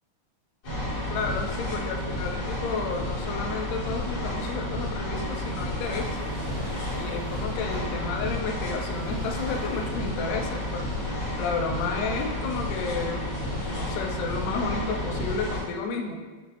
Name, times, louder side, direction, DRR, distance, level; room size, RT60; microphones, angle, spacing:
sound 1, 0.6-15.6, left 1 dB, 50° left, 1.1 m, -31 dB
voice 1, 1.1-6.4 6.9-10.9 11.4-16.2, left 4 dB, 80° left, 2 dB, 2.1 m, -32 dB
Waves surf, 5.3-11.6, right 2 dB, 75° right, 2.5 m, -45 dB
5.8 x 3.0 x 2.9 m, 1.3 s
omnidirectional pair, 3.8 m